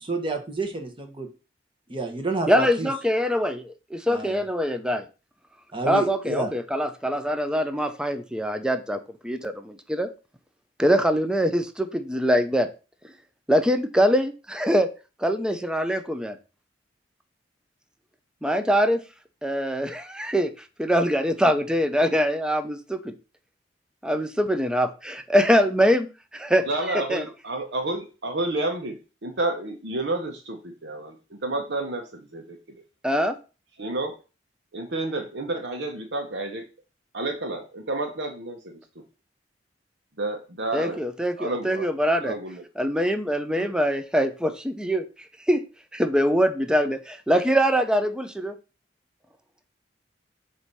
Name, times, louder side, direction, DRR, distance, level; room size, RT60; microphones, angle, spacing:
voice 1, 0.1-1.3 1.9-2.9 4.1-4.4 5.7-6.5, right 2 dB, 30° right, 5 dB, 1.2 m, -29 dB
voice 2, 2.5-5.0 5.9-10.1 10.8-12.7 13.5-14.9 15.2-16.4 18.4-19.0 19.4-20.5 20.8-23.1 24.0-26.1 26.3-26.7 26.9-27.2 33.0-33.4 40.7-42.4 42.8-45.0 45.5-45.6 45.9-48.6, equal, 5° right, 8 dB, 0.6 m, -23 dB
voice 3, 26.7-31.2 31.4-32.6 33.8-34.1 34.7-36.6 37.1-38.8 40.2-41.0 41.4-41.9 42.2-42.6 43.5-43.7, right 2 dB, 70° right, 4 dB, 1.0 m, -30 dB
7.7 x 2.8 x 5.4 m, 0.32 s
head